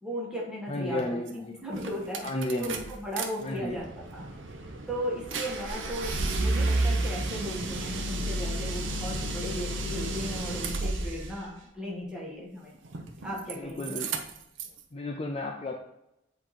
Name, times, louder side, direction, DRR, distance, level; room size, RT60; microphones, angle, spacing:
voice 1, 0.0-1.2 1.6-2.3 2.6-4.3 4.9-12.7 13.2-14.1, equal, 5° right, -4 dB, 1.5 m, -36 dB
voice 2, 0.7-1.6 2.2-2.9 3.4-3.8 13.6-14.1 14.9-15.8, left 1 dB, 30° left, 2 dB, 0.4 m, -33 dB
sound 1, 1.3-1.4 1.7-3.3 3.6-11.4 12.8-13.5 13.8-14.8, right 2 dB, 90° right, 0.7 m, -31 dB
7.8 x 3.0 x 4.2 m, 0.85 s
head